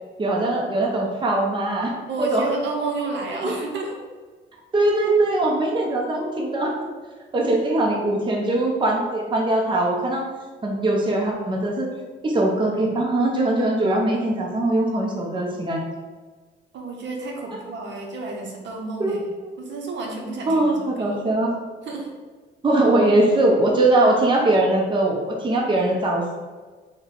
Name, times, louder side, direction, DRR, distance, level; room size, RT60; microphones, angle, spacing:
voice 1, 0.2-2.5 3.3-3.5 4.7-6.9 7.3-10.2 10.6-11.9 12.2-15.8 19.0-19.2 20.5-21.5 22.6-26.3, right 2 dB, 25° right, -1 dB, 0.6 m, -21 dB
voice 2, 2.1-4.0 16.7-19.2 19.6-20.7 21.0-21.2 21.8-22.2, right 3 dB, 65° right, 0 dB, 0.7 m, -31 dB
3.3 x 2.2 x 3.8 m, 1.4 s
cardioid pair, 90°, 20 cm